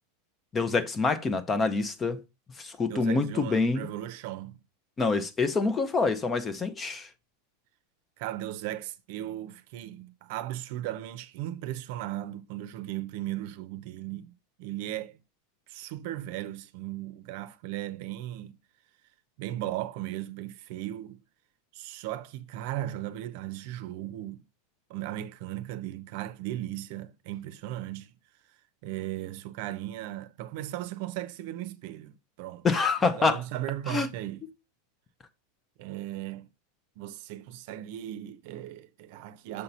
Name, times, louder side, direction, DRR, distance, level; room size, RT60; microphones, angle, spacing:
voice 1, 0.5-2.2 2.6-3.9 5.0-7.1 32.6-33.4 33.9-34.1, left 4 dB, 20° left, 0.6 m, -26 dB
voice 2, 2.8-4.6 8.2-14.3 14.6-15.2 15.7-18.6 19.4-21.2 21.7-24.4 24.9-28.1 28.8-32.7 33.0-34.4 35.8-36.5 37.0-39.6, right 14 dB, 60° right, 0.7 m, -37 dB
6.7 x 2.8 x 5.4 m
supercardioid pair, 140°, 0 cm